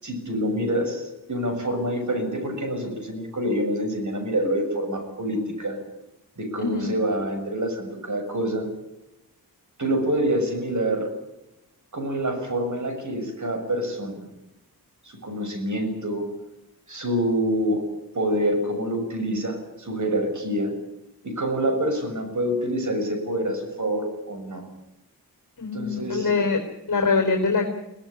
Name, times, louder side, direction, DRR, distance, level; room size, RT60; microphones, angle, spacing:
voice 1, 0.0-5.8 6.4-8.7 9.8-11.1 11.9-14.3 15.0-16.3 16.9-17.8 18.1-20.7 21.2-24.6 25.7-26.3, right 1 dB, 50° right, 5 dB, 6.7 m, -26 dB
voice 2, 6.6-6.9 25.6-26.6 26.9-27.7, left 4 dB, 60° left, 3 dB, 4.2 m, -23 dB
24.0 x 17.5 x 10.0 m, 0.92 s
wide cardioid pair, 100°, 37 cm